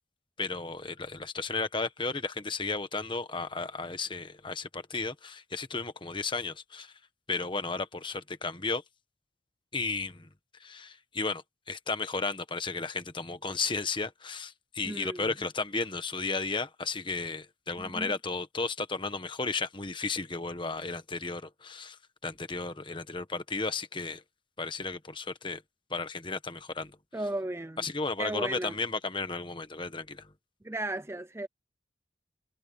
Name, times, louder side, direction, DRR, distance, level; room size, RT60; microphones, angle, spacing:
voice 1, 0.4-7.0 7.3-8.8 9.7-10.3 10.6-24.2 24.6-25.6 25.9-27.0 27.8-30.3, left 4 dB, 25° left, 1.3 m, -34 dB
voice 2, 14.8-15.3 17.8-18.1 27.1-27.8 28.2-28.7 30.6-31.5, right 1 dB, 15° right, 0.5 m, -35 dB
head